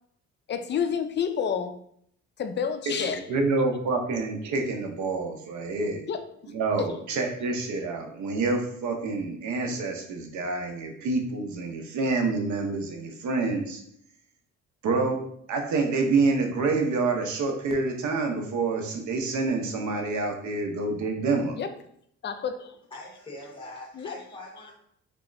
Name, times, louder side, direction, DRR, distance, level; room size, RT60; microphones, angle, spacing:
voice 1, 0.5-1.8 2.4-3.2 6.1-6.5 6.8-6.9 21.6-21.7 22.2-22.8 23.9-24.1, left 7 dB, 35° left, 9 dB, 0.4 m, -29 dB
voice 2, 2.9-6.0 6.5-13.8 14.8-15.2 15.5-21.6, right 3 dB, 70° right, 3 dB, 0.8 m, -27 dB
voice 3, 22.9-24.7, left 2 dB, 15° left, -5 dB, 1.3 m, -42 dB
3.5 x 3.0 x 2.5 m, 0.68 s
cardioid pair, 90°, 30 cm